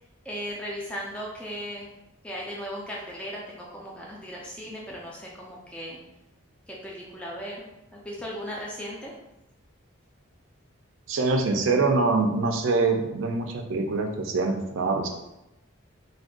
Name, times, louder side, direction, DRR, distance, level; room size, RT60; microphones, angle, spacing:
voice 1, 0.2-1.9 2.2-6.0 6.7-7.6 7.9-9.1, equal, 5° left, -4 dB, 0.3 m, -37 dB
voice 2, 11.1-15.1, right 3 dB, 70° right, 4 dB, 0.4 m, -24 dB
2.5 x 2.2 x 3.6 m, 0.92 s
head